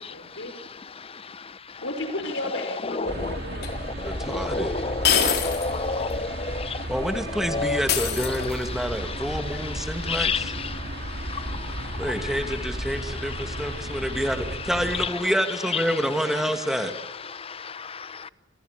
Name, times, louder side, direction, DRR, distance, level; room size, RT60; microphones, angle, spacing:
voice 1, 0.1-0.5 1.8-3.9, left 1 dB, 80° left, 5.0 m, -33 dB
voice 2, 3.0-3.3 4.3-6.3 6.6-6.7 7.5-7.8 10.1-10.4, left 4 dB, 30° left, 0.9 m, -28 dB
sound 1, 3.0-15.1, right 1 dB, 55° right, 2.6 m, -34 dB
sound 2, 3.6-3.7 5.0-5.8 6.1-6.2 7.9-8.8, left 8 dB, 55° left, 3.7 m, -24 dB
voice 3, 4.0-4.7 6.9-10.5 12.0-16.9, equal, ahead, 2.5 m, -28 dB
28.0 x 27.5 x 6.9 m
head